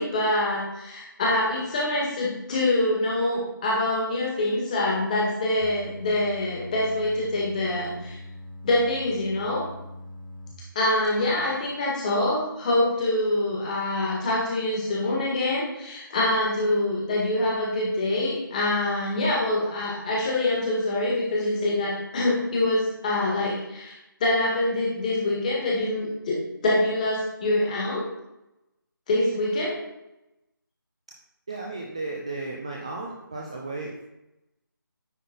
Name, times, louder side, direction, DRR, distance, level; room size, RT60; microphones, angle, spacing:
voice 1, 0.0-8.2 8.6-9.6 10.7-23.9 24.2-26.4 26.6-28.0 29.1-29.8, left 1 dB, 20° left, -4 dB, 1.6 m, -25 dB
sound 1, 5.6-10.5, left 1 dB, 60° left, 1.3 m, -42 dB
voice 2, 11.2-11.5 31.5-34.1, right 3 dB, 15° right, -1 dB, 0.4 m, -35 dB
9.6 x 3.7 x 3.8 m, 0.91 s
figure-of-eight pair, 165°, 12 cm